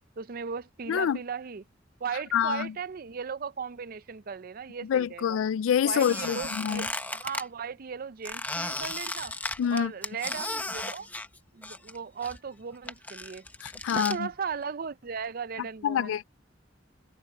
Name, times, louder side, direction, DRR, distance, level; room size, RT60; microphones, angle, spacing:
voice 1, 0.2-1.7 2.0-5.4 5.8-9.3 9.7-11.1 11.5-13.4 13.9-16.2, right 6 dB, 50° right, 0.5 m, -37 dB
voice 2, 2.3-2.7 4.9-6.9 9.6-9.9 13.6-14.3 15.8-16.2, left 8 dB, 90° left, 0.3 m, -26 dB
Squeak, 6.0-7.4 8.2-12.0 12.2-14.2, left 2 dB, 10° left, 1.0 m, -35 dB
head